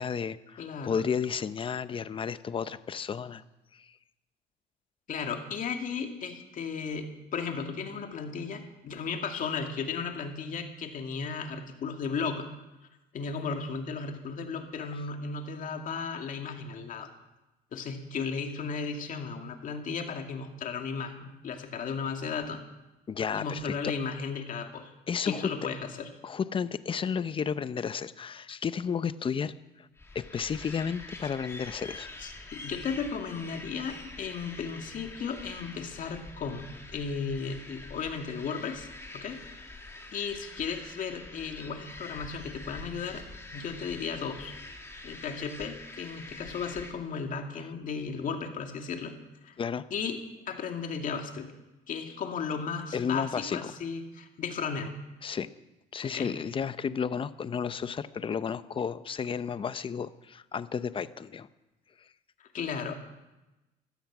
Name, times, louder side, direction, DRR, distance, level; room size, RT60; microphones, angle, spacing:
voice 1, 0.0-3.4 3.7-3.9 23.1-23.7 25.1-25.5 26.2-29.5 29.8-29.9 30.1-32.1 49.6-49.9 52.9-53.6 55.2-55.5 55.9-61.5, left 6 dB, 30° left, 14 dB, 0.7 m, -32 dB
voice 2, 0.6-1.0 5.1-12.5 13.1-17.1 17.7-22.6 23.3-24.9 25.3-26.1 32.2-38.9 39.1-39.4 40.1-43.2 43.5-44.5 45.0-49.2 49.4-49.6 49.9-50.2 50.5-51.5 51.9-55.0 56.0-56.3 62.5-62.9, left 5 dB, 50° left, 4 dB, 2.3 m, -35 dB
sound 1, 30.0-46.9, left 2 dB, 15° left, 2.2 m, -46 dB
16.5 x 13.0 x 6.1 m, 1.0 s
cardioid pair, 110°, 17 cm